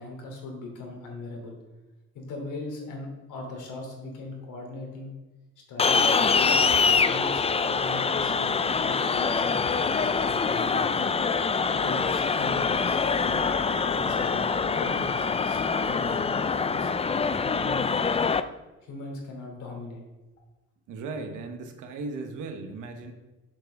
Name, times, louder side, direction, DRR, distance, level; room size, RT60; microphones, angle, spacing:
voice 1, 0.0-1.6 2.1-5.1 5.7-11.1 11.7-17.9 18.8-20.0, left 2 dB, 85° left, 1 dB, 2.9 m, -39 dB
sound 1, 5.8-18.4, left 5 dB, 20° left, 0.4 m, -24 dB
voice 2, 20.9-23.1, right 3 dB, 90° right, 5 dB, 1.3 m, -37 dB
7.4 x 5.2 x 6.6 m, 1.1 s
cardioid pair, 90°, 30 cm